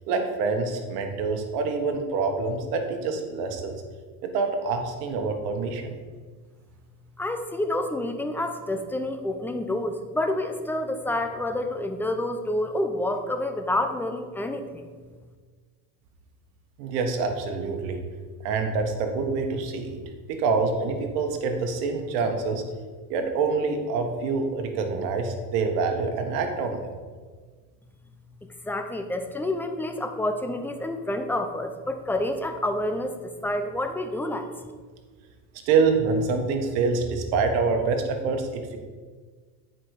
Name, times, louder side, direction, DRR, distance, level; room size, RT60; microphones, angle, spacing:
voice 1, 0.1-3.8 4.2-5.9 16.8-18.0 18.4-20.0 20.3-22.6 23.1-26.9 35.7-38.8, right 4 dB, 70° right, 5 dB, 1.5 m, -26 dB
voice 2, 7.2-14.8 28.7-33.2 33.4-34.5, left 1 dB, 5° left, 6 dB, 0.5 m, -28 dB
9.0 x 5.2 x 4.9 m, 1.5 s
supercardioid pair, 115°, 50 cm